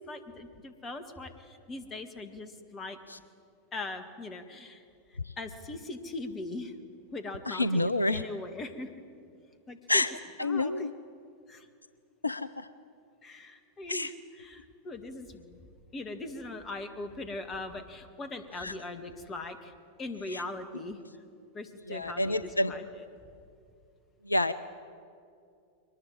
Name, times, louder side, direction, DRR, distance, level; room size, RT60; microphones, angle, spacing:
voice 1, 0.0-3.0 3.7-4.8 5.1-6.7 7.1-8.9 9.7-10.0 10.4-10.9 11.5-11.7 13.2-15.6 15.9-19.7 20.0-21.0 21.5-23.1, left 2 dB, 25° left, 9 dB, 2.0 m, -40 dB
voice 2, 7.5-8.2 9.9-10.1 10.4-10.9 12.2-12.5 13.9-14.1 18.6-18.7 20.3-20.4 21.9-22.7 24.3-24.5, left 2 dB, 80° left, 14 dB, 0.5 m, -28 dB
23.0 x 20.0 x 9.0 m, 2.4 s
figure-of-eight pair, 90°, 0 cm